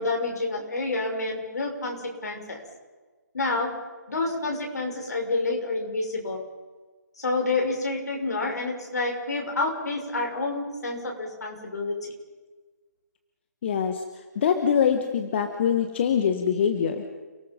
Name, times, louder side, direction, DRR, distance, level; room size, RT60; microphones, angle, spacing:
voice 1, 0.0-2.6 3.3-6.5 7.2-12.1, left 2 dB, 65° left, 1 dB, 6.2 m, -29 dB
voice 2, 13.6-17.0, left 7 dB, 40° left, 7 dB, 1.6 m, -24 dB
29.5 x 19.0 x 5.4 m, 1.3 s
figure-of-eight pair, 140°, 10 cm